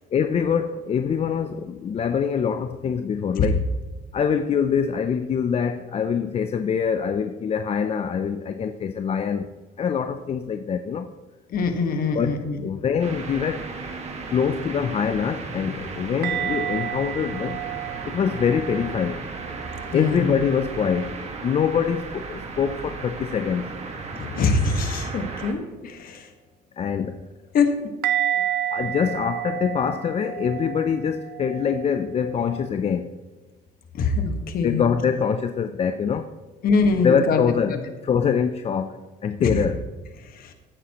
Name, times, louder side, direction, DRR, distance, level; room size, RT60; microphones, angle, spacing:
voice 1, 0.1-3.6 4.1-9.5 9.8-11.1 12.1-13.6 14.3-17.6 18.1-19.2 19.9-21.2 21.4-23.6 26.8-27.2 28.7-33.1 34.6-36.3 37.0-37.7 38.0-39.8, left 7 dB, 35° left, 9 dB, 0.5 m, -24 dB
voice 2, 11.5-12.6 19.9-20.4 24.2-26.3 27.5-27.7 33.9-34.8 36.6-37.4 37.7-37.8 39.4-39.6 40.2-40.5, left 4 dB, 60° left, 6 dB, 1.5 m, -23 dB
sound 1, 13.0-25.5, right 4 dB, 40° right, 1.7 m, -35 dB
sound 2, 16.2-20.2 20.5-21.1 28.0-32.7, right 12 dB, 70° right, 0.5 m, -31 dB
14.5 x 9.2 x 3.0 m, 1.2 s
cardioid pair, 110°, 17 cm